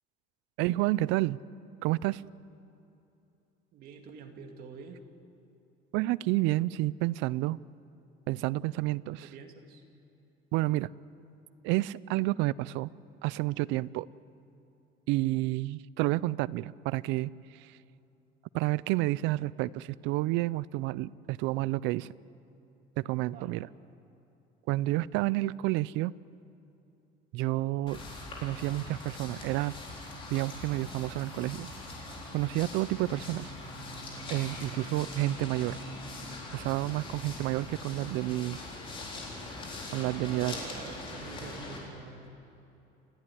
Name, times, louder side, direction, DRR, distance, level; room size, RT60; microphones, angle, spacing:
voice 1, 0.6-1.4 1.8-2.2 5.9-7.6 8.3-9.3 10.5-10.9 11.6-12.9 13.2-14.1 15.1-17.8 18.5-22.1 23.0-23.7 24.7-26.1 27.3-28.0 28.4-29.7 30.3-31.7 32.3-33.5 34.3-35.8 36.5-38.6 39.9-40.5, right 18 dB, 70° right, 20 dB, 0.5 m, -30 dB
voice 2, 3.7-5.0 9.1-9.8 23.3-23.7 40.2-42.4, right 5 dB, 50° right, 4 dB, 2.3 m, -47 dB
sound 1, 27.9-41.8, left 2 dB, 25° left, 4.2 m, -42 dB
29.0 x 13.0 x 9.9 m, 2.8 s
cardioid pair, 175°, 20 cm